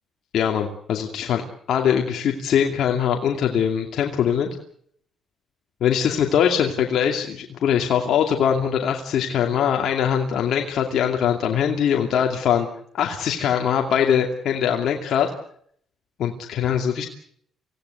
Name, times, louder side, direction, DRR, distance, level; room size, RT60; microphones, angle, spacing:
voice 1, 0.3-4.5 5.8-12.7 12.9-15.3 16.2-17.1, left 8 dB, 70° left, 2 dB, 2.6 m, -22 dB
26.5 x 17.0 x 8.3 m, 0.65 s
cardioid pair, 90°, 0 cm